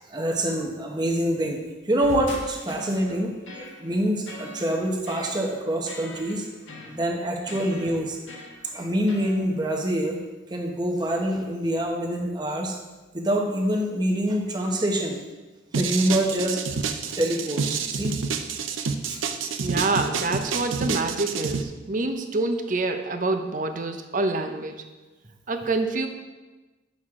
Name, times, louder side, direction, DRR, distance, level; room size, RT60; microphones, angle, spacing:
voice 1, 0.0-6.5 6.8-8.2 8.7-10.2 10.5-12.8 13.1-15.2 15.7-16.6 17.2-18.1 19.1-19.2 19.5-19.6, right 1 dB, 20° right, 1 dB, 0.9 m, -26 dB
sound 1, 2.0-9.4, left 2 dB, 80° left, 1.3 m, -41 dB
sound 2, 15.7-21.6, right 5 dB, 90° right, 0.6 m, -28 dB
voice 2, 19.6-24.8 25.5-26.1, right 2 dB, 40° right, 7 dB, 0.6 m, -26 dB
9.1 x 6.3 x 3.7 m, 1.2 s
head